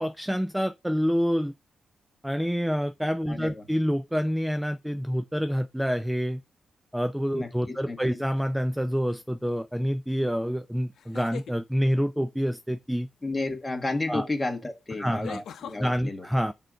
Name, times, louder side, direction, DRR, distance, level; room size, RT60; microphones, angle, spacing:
voice 1, 0.0-1.5 2.2-6.4 6.9-13.1 14.1-14.3 15.0-15.4 15.8-16.5, equal, 5° right, 0.3 m, -27 dB
voice 2, 3.3-3.6 7.3-8.2 13.2-16.2, left 2 dB, 15° left, 1.6 m, -32 dB
sound 1, 8.4-8.8 10.9-11.6 13.8-13.9 15.2-15.8, left 8 dB, 85° left, 0.6 m, -41 dB
6.5 x 3.9 x 6.2 m
cardioid pair, 115°, 0 cm